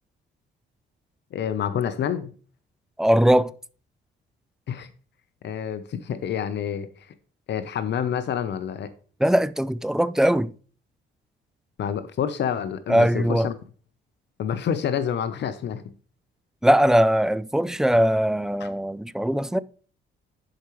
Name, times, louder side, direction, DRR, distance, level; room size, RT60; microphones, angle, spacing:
voice 1, 1.3-2.3 4.7-4.9 5.4-6.9 7.5-8.9 11.8-13.5 14.4-15.8 18.6-18.7, left 8 dB, 60° left, 0.7 m, -28 dB
voice 2, 3.0-3.5 9.2-10.5 12.9-13.5 16.6-19.6, equal, 5° right, 0.3 m, -20 dB
11.5 x 4.9 x 3.1 m
cardioid pair, 90°, 20 cm